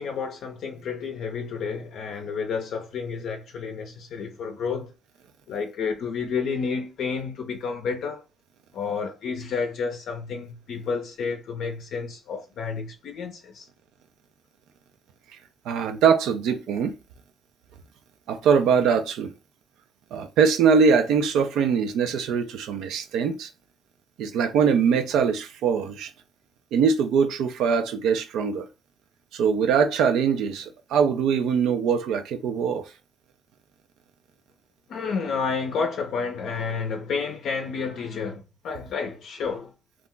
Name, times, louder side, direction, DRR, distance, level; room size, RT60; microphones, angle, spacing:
voice 1, 0.0-4.9 5.5-8.2 8.7-13.7 34.9-39.7, left 5 dB, 75° left, 0.5 m, -30 dB
voice 2, 15.7-16.9 18.3-19.3 20.1-23.5 24.2-26.1 26.7-28.6 29.3-32.9, right 6 dB, 85° right, 0.4 m, -22 dB
2.4 x 2.1 x 3.7 m
cardioid pair, 90°, 0 cm